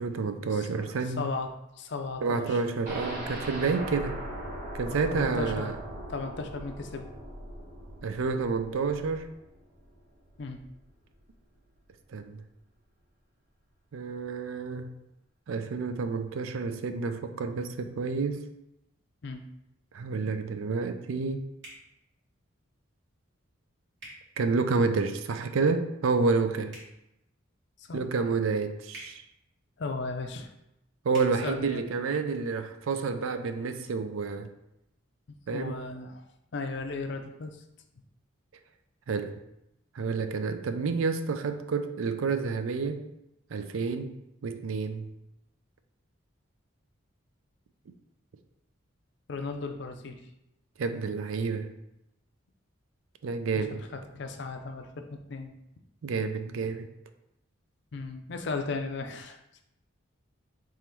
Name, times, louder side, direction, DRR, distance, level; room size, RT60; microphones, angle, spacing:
voice 1, 0.0-1.3 2.2-4.2 4.7-5.8 8.0-9.3 12.1-12.4 13.9-15.0 15.5-18.4 19.9-21.5 24.4-26.8 27.9-29.2 31.0-34.5 35.5-35.8 39.1-39.4 39.9-43.0 43.5-44.1 44.4-45.1 50.8-51.7 53.2-53.8 56.0-56.9, right 4 dB, 75° right, 9 dB, 0.4 m, -29 dB
voice 2, 1.0-1.5 1.8-2.6 5.1-5.7 6.1-7.1 10.4-10.6 19.2-19.4 27.8-28.0 29.8-30.5 31.4-31.9 35.5-36.2 36.5-37.6 49.3-50.2 53.7-55.5 57.9-59.6, left 3 dB, 55° left, 5 dB, 0.5 m, -36 dB
sound 1, 2.9-10.7 11.1-11.2 11.5-11.6, right 1 dB, 40° right, 1.6 m, -40 dB
sound 2, 21.6-21.8 24.0-24.2 26.6-26.9 28.9-29.1 31.1-31.3, right 1 dB, 55° right, 1.6 m, -45 dB
3.7 x 3.0 x 4.4 m, 0.85 s
head